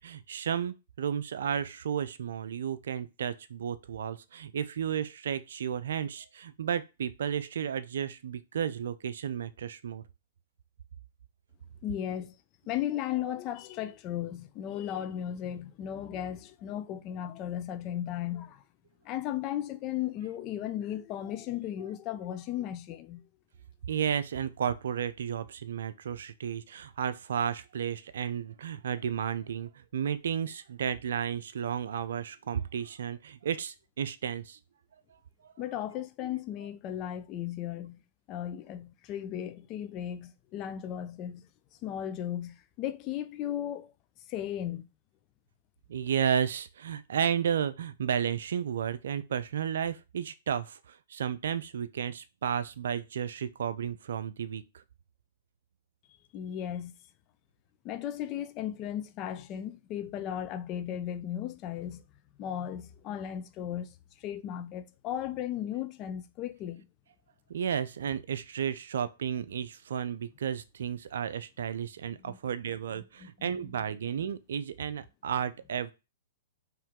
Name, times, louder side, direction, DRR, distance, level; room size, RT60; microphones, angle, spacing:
voice 1, 0.0-10.0 23.9-34.6 35.4-35.5 45.9-54.8 67.5-75.9, right 8 dB, 75° right, 0.5 m, -33 dB
voice 2, 11.8-12.4 12.7-18.6 19.0-23.2 35.6-38.0 38.3-41.5 41.8-43.9 44.3-44.9 56.3-56.9 57.8-62.0 62.4-66.9 72.2-72.4 73.2-73.8, left 11 dB, 35° left, 0.6 m, -36 dB
4.6 x 3.2 x 3.6 m
hypercardioid pair, 125°, 0 cm